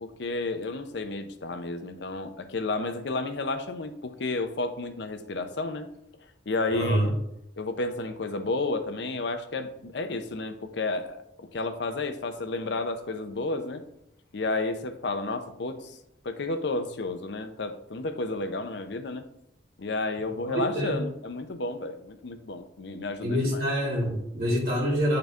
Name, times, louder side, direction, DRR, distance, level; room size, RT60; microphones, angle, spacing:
voice 1, 0.0-5.9 6.5-7.1 7.6-13.8 14.3-16.0 16.2-19.2 19.8-23.6, left 3 dB, 65° left, 8 dB, 0.6 m, -31 dB
voice 2, 6.7-7.1 20.5-21.0 23.2-25.2, equal, 55° right, -3 dB, 2.5 m, -26 dB
9.0 x 3.9 x 3.5 m, 0.80 s
head